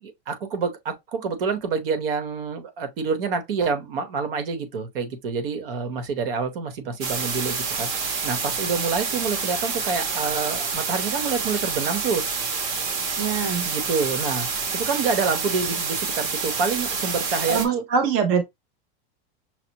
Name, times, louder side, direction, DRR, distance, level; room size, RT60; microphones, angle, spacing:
voice 1, 0.0-7.9 8.2-12.2 13.6-14.5 14.7-17.8, right 5 dB, 65° right, 1.1 m, -27 dB
sound 1, 7.0-17.7, right 5 dB, 40° right, 0.8 m, -28 dB
voice 2, 13.2-13.7 17.5-18.4, right 6 dB, 25° right, 0.3 m, -23 dB
5.8 x 2.0 x 2.9 m
supercardioid pair, 180°, 30 cm